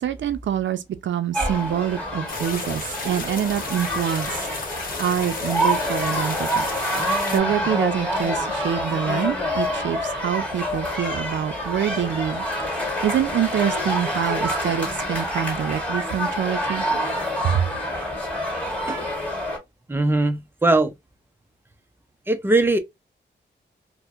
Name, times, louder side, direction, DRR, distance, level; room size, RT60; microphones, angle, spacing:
voice 1, 0.0-4.4 5.0-6.7 7.3-12.5 13.0-16.8 17.4-17.7, right 9 dB, 75° right, 0.4 m, -25 dB
sound 1, 1.3-19.6, equal, 10° left, 1.6 m, -27 dB
sound 2, 2.3-7.4, left 3 dB, 50° left, 0.8 m, -33 dB
voice 2, 19.9-20.9 22.3-22.8, right 2 dB, 10° right, 0.5 m, -20 dB
4.3 x 2.0 x 2.4 m
wide cardioid pair, 165°, 19 cm